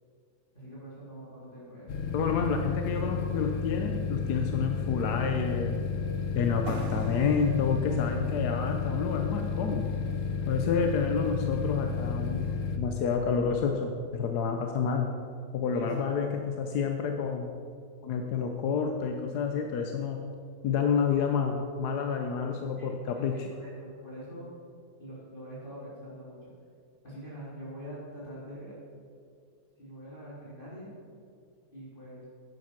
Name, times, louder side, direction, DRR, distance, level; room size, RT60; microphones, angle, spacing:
voice 1, 0.5-1.9 10.4-10.8 15.7-16.1 22.8-22.9 23.3-24.5 25.0-26.5 27.0-28.8 29.8-30.9 31.7-32.3, equal, 30° left, -9 dB, 3.3 m, -44 dB
sound 1, 1.9-12.8, left 5 dB, 55° left, 1.3 m, -32 dB
voice 2, 2.1-5.8 6.3-9.9 10.5-12.5 12.7-15.1 15.5-17.5 18.0-20.2 20.6-23.3, left 6 dB, 75° left, 4 dB, 1.3 m, -29 dB
sound 2, 6.7-10.3, right 5 dB, 50° right, 0.8 m, -47 dB
10.5 x 8.1 x 5.9 m, 2.3 s
omnidirectional pair, 1.7 m